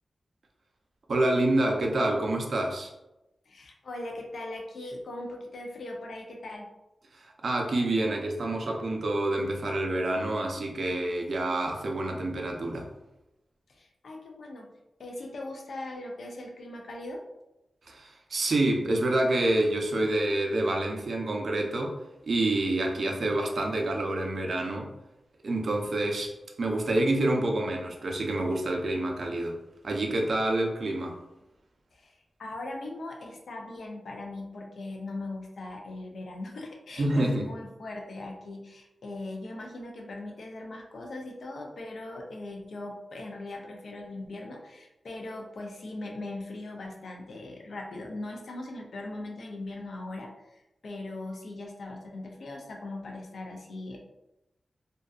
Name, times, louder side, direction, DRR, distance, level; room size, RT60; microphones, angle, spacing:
voice 1, 1.1-2.9 7.2-12.9 17.9-21.9 22.2-24.9 25.4-26.3 26.6-29.6 29.8-31.2 37.0-37.5, right 1 dB, 60° right, 1 dB, 0.4 m, -27 dB
voice 2, 3.5-6.7 13.7-14.7 15.0-17.2 31.9-54.0, left 2 dB, 70° left, 1 dB, 0.4 m, -40 dB
2.6 x 2.2 x 2.3 m, 0.93 s
wide cardioid pair, 140°, 0 cm